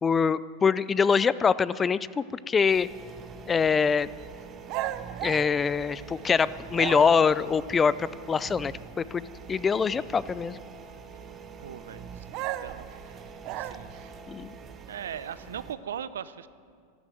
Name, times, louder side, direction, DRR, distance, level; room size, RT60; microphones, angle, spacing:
voice 1, 0.0-2.9 3.5-4.1 5.2-8.7 9.0-10.6 14.3-14.5, left 6 dB, 20° left, 18 dB, 0.4 m, -24 dB
sound 1, 2.7-15.7, right 5 dB, 30° right, 1.2 m, -45 dB
sound 2, 4.7-6.3 6.7-7.4 12.3-14.1, right 13 dB, 50° right, 0.7 m, -35 dB
voice 2, 11.6-12.9 13.5-13.9 14.9-16.5, right 9 dB, 90° right, 15 dB, 0.6 m, -39 dB
13.5 x 12.5 x 7.7 m, 2.1 s
hypercardioid pair, 115°, 0 cm